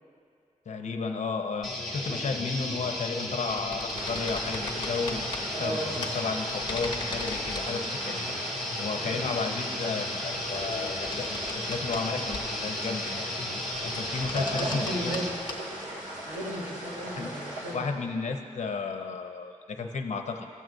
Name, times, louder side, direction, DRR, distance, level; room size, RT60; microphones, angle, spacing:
voice 1, 0.7-8.3 8.8-13.3 13.8-15.2 17.2-17.3 17.7-20.5, left 4 dB, 65° left, 4 dB, 0.7 m, -33 dB
sound 1, 1.6-15.3, left 1 dB, ahead, 1.2 m, -34 dB
sound 2, 3.5-5.4 6.0-6.1 6.5-7.7 10.3-12.0 12.3-12.7 13.9-15.2 15.5-15.6, left 3 dB, 35° left, 0.9 m, -39 dB
sound 3, 3.9-17.7, right 1 dB, 90° right, 2.0 m, -39 dB
voice 2, 5.5-6.0 8.9-9.3 14.3-15.4 16.2-17.9, equal, 55° right, -5 dB, 1.9 m, -34 dB
15.5 x 7.6 x 2.6 m, 2.4 s
wide cardioid pair, 175°, 13 cm